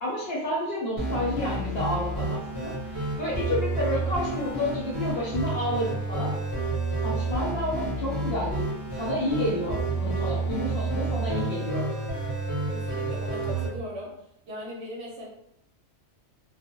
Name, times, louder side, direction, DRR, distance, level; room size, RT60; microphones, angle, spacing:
voice 1, 0.0-6.3 6.6-6.7 7.0-8.6 9.0-11.8, left 1 dB, 60° left, -5 dB, 0.9 m, -30 dB
sound 1, 1.0-13.7, right 2 dB, 20° left, 0.8 m, -30 dB
voice 2, 12.7-14.1 14.4-15.3, equal, 70° right, -2 dB, 0.8 m, -38 dB
2.3 x 2.0 x 2.9 m, 0.74 s
omnidirectional pair, 1.3 m